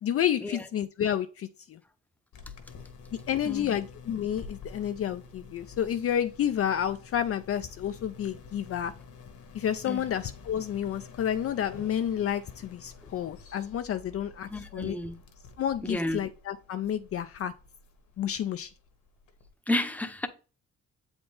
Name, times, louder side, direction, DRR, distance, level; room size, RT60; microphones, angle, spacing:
voice 1, 0.0-1.8 3.3-8.9 9.5-15.0 15.6-17.5 18.2-18.7, left 9 dB, 50° left, 0.4 m, -30 dB
sound 1, 2.3-19.5, left 5 dB, 70° left, 1.4 m, -49 dB
voice 2, 3.5-3.8 9.9-10.0 14.5-15.2 15.8-16.2 19.7-20.3, left 1 dB, 5° left, 0.8 m, -31 dB
7.6 x 4.4 x 3.4 m
cardioid pair, 90°, 30 cm